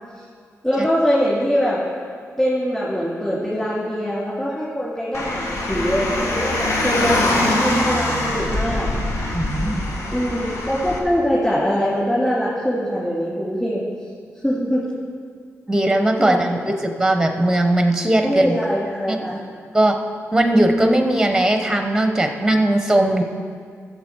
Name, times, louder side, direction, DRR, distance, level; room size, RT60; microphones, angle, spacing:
voice 1, 0.6-1.8 2.4-8.9 10.1-13.8 14.4-14.8 16.2-16.5 18.2-19.3, equal, 10° left, -9 dB, 2.6 m, -22 dB
Car, 5.1-11.0, left 1 dB, 65° left, 1.5 m, -23 dB
voice 2, 9.3-9.8 15.7-18.6 19.1-19.2 19.7-20.0 20.3-23.2, right 1 dB, 5° right, 5 dB, 0.9 m, -18 dB
14.5 x 6.9 x 4.6 m, 2.1 s
cardioid pair, 90°, 5 cm